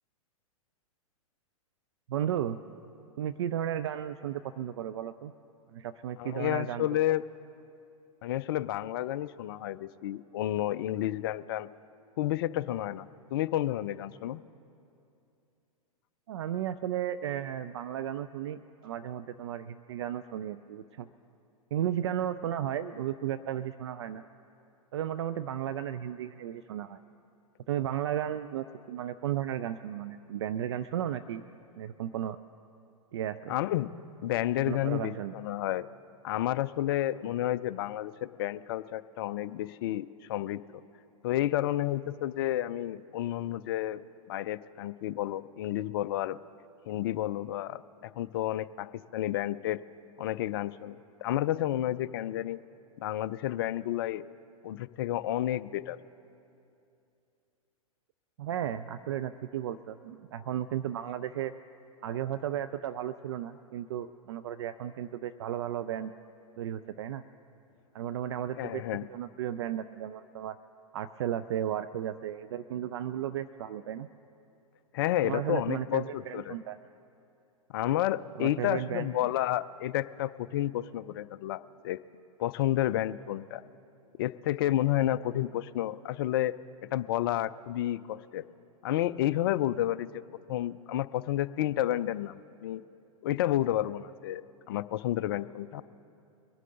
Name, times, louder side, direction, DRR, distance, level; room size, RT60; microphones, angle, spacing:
voice 1, 2.1-2.6 3.2-5.3 5.7-7.0 16.3-21.1 21.7-24.2 24.9-27.0 27.7-31.4 31.8-32.4 33.1-33.5 34.7-35.3 58.4-61.5 62.0-66.1 66.6-67.2 67.9-68.8 69.1-70.6 70.9-74.1 75.2-76.8 78.4-79.1, right 11 dB, 50° right, 11 dB, 0.4 m, -34 dB
voice 2, 6.2-7.2 8.2-11.7 12.2-14.4 33.5-33.9 34.2-35.9 36.2-40.6 41.2-44.0 44.3-46.4 46.8-48.9 49.1-49.8 50.2-52.6 53.0-54.3 54.6-56.0 68.6-69.1 74.9-76.6 77.7-82.0 82.4-83.6 84.2-86.5 86.9-88.4 88.8-90.1 90.5-92.8 93.2-94.4 94.7-95.8, left 13 dB, 40° left, 16 dB, 0.4 m, -30 dB
23.0 x 11.0 x 3.8 m, 2.6 s
figure-of-eight pair, 105°, 19 cm